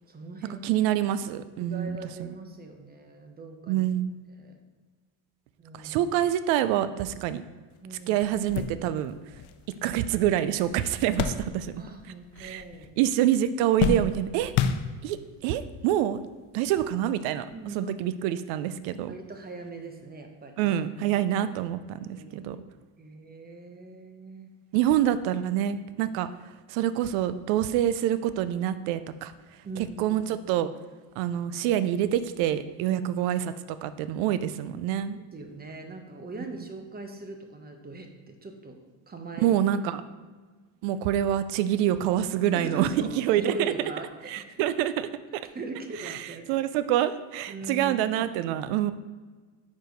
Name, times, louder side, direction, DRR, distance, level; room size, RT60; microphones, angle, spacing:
voice 1, 0.1-0.6 1.6-3.9 4.4-4.5 5.6-5.9 7.8-8.2 11.8-12.9 17.5-18.0 19.1-20.7 22.0-22.5 23.0-24.5 29.6-30.2 32.9-33.0 35.3-38.8 39.1-39.6 42.5-44.4 45.5-46.5 47.5-48.0, right 3 dB, 20° right, 5 dB, 0.8 m, -40 dB
voice 2, 0.6-2.3 3.7-4.2 5.8-7.4 8.1-9.1 9.8-11.8 12.4-12.6 13.0-14.5 15.0-15.2 15.4-16.2 16.5-17.5 17.7-19.1 20.6-22.6 24.7-26.3 26.7-29.3 29.8-30.7 31.2-35.2 39.4-40.0 40.8-43.7 44.3-45.1 46.0-48.9, right 11 dB, 85° right, 13 dB, 0.5 m, -26 dB
sound 1, 7.7-7.8 8.2-12.0 12.3-13.0 13.3-15.3 16.1-16.2 17.5-17.7, left 7 dB, 60° left, 0.6 m, -31 dB
4.8 x 4.7 x 5.1 m, 1.4 s
cardioid pair, 110°, 45 cm